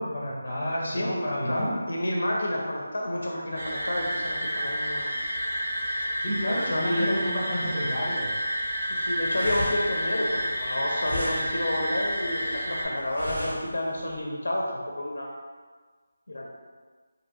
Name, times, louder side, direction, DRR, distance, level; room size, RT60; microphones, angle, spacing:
voice 1, 0.0-1.8 6.2-8.3, equal, 35° left, -5 dB, 0.6 m, -30 dB
voice 2, 0.8-5.1 6.7-7.2 8.9-15.3 16.3-16.5, left 1 dB, 80° left, -2 dB, 0.5 m, -30 dB
sound 1, 3.6-12.9, equal, 60° right, 0.5 m, -30 dB
sound 2, 8.7-14.2, left 1 dB, 85° right, 1.0 m, -37 dB
2.7 x 2.6 x 2.6 m, 1.4 s
figure-of-eight pair, 180°, 0 cm